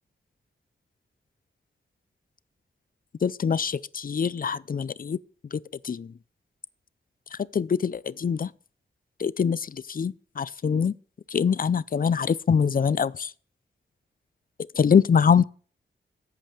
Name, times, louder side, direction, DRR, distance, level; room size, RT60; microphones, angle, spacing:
voice 1, 3.2-5.2 5.5-5.6 5.8-6.1 7.5-8.5 9.2-10.9 11.3-13.3 14.8-15.4, left 6 dB, 45° left, 0.5 m, -24 dB
14.0 x 5.2 x 7.5 m
wide cardioid pair, 70°, 20 cm